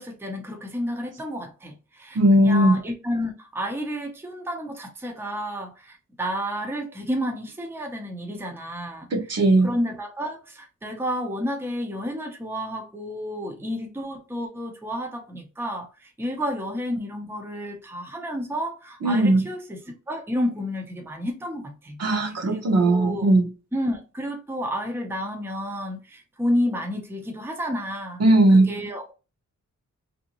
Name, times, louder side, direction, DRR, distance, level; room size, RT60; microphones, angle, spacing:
voice 1, 0.0-9.1 9.6-19.8 20.1-22.0 22.5-23.4 23.7-28.2 28.7-29.1, equal, 10° right, 0.6 m, -31 dB
voice 2, 2.1-2.8 9.1-9.7 19.0-19.4 22.0-23.5 28.2-28.7, right 1 dB, 55° right, 1.0 m, -18 dB
3.4 x 2.7 x 2.9 m
wide cardioid pair, 180°, 30 cm